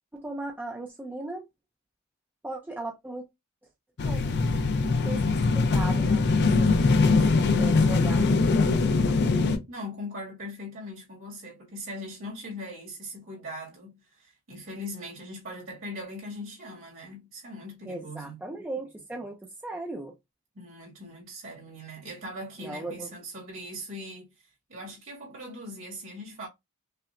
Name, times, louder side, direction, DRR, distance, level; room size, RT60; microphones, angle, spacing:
voice 1, 0.1-1.5 2.4-3.2 4.0-4.3 4.9-5.2 5.5-8.7 17.9-20.1 22.6-23.1, right 2 dB, 10° right, 0.4 m, -38 dB
sound 1, 4.0-9.6, left 3 dB, 50° left, 0.5 m, -22 dB
voice 2, 9.7-18.4 20.5-24.3 24.7-26.5, left 1 dB, 65° right, 2.0 m, -40 dB
5.6 x 2.1 x 2.5 m
head